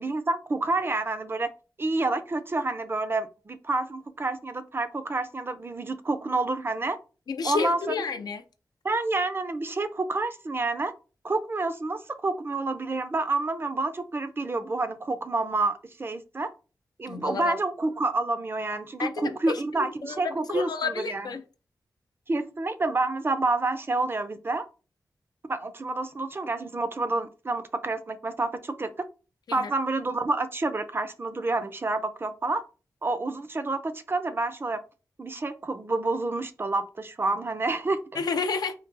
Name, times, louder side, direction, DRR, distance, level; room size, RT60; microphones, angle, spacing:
voice 1, 0.0-1.5 1.8-7.0 7.4-7.9 8.8-10.9 11.2-16.5 17.0-21.3 22.3-24.6 25.5-29.1 29.5-32.6 33.0-34.8 35.2-38.0, right 2 dB, 35° right, 0.4 m, -28 dB
voice 2, 7.3-8.4 17.1-17.5 19.0-21.4 29.6-29.7 38.2-38.7, left 5 dB, 75° left, 0.4 m, -30 dB
3.8 x 2.3 x 2.5 m
wide cardioid pair, 75°, 7 cm